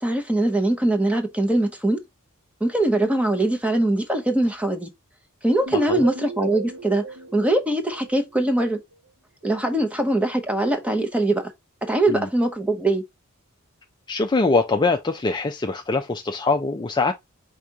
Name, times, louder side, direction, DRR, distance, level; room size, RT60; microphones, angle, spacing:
voice 1, 0.0-2.0 2.6-4.9 5.4-7.0 7.3-8.8 9.4-11.5 11.8-13.0, right 1 dB, 5° right, 0.8 m, -22 dB
sound 1, 5.7-8.6, right 2 dB, 65° right, 1.8 m, -34 dB
voice 2, 14.1-17.1, left 3 dB, 20° left, 0.4 m, -23 dB
5.0 x 3.5 x 2.8 m
head